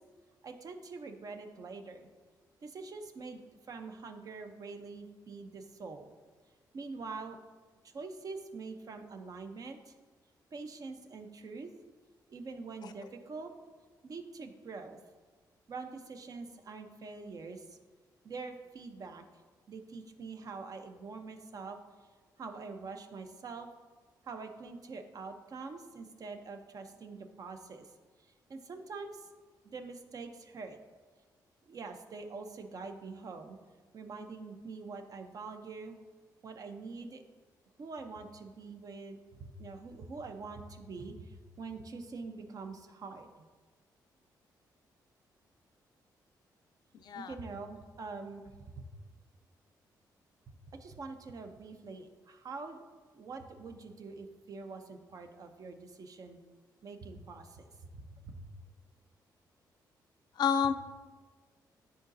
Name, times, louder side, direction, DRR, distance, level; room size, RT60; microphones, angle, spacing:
voice 1, 0.4-2.1 2.6-3.4 3.7-6.1 6.7-7.4 7.8-9.9 10.5-11.7 12.3-13.5 14.0-15.0 15.7-17.8 18.2-19.2 19.7-21.8 22.4-23.7 24.2-27.9 28.2-29.3 29.6-30.8 31.7-33.6 33.9-36.0 36.4-37.2 37.8-43.5 47.1-48.9 50.5-52.8 53.1-56.4 56.8-58.6, right 4 dB, 50° right, 6 dB, 0.6 m, -45 dB
voice 2, 47.0-47.3 60.4-60.7, left 7 dB, 65° left, 9 dB, 0.4 m, -28 dB
10.0 x 4.0 x 2.6 m, 1.4 s
cardioid pair, 80°, 8 cm